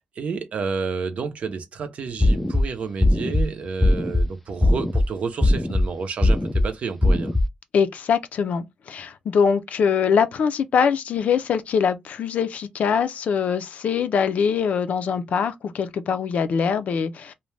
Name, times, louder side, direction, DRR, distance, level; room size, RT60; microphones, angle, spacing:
voice 1, 0.0-7.4, right 5 dB, 60° right, 0.6 m, -30 dB
sound 1, 2.2-2.6 3.0-3.4 3.8-4.2 4.6-5.0 5.4-5.8 6.2-6.6 7.0-7.4, left 1 dB, 5° left, 0.3 m, -19 dB
voice 2, 7.7-17.3, left 6 dB, 75° left, 0.4 m, -23 dB
2.5 x 2.1 x 3.1 m
wide cardioid pair, 155°, 2 cm